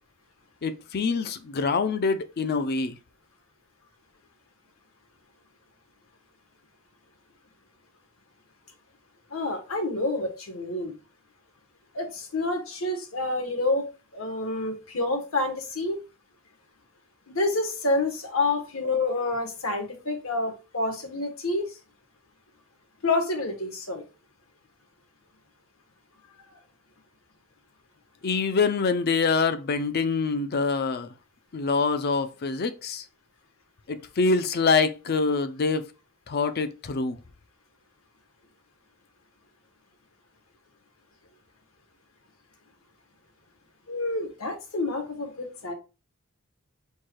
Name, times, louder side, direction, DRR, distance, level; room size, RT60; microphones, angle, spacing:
voice 1, 0.6-3.0 28.2-31.1 31.5-33.0 33.9-35.9 36.3-37.2, left 4 dB, 50° left, 0.5 m, -25 dB
voice 2, 9.3-11.0 11.9-13.9 14.1-16.0 17.3-21.7 23.0-24.0 43.9-45.7, left 2 dB, 75° left, 1.3 m, -28 dB
4.5 x 2.3 x 4.6 m
head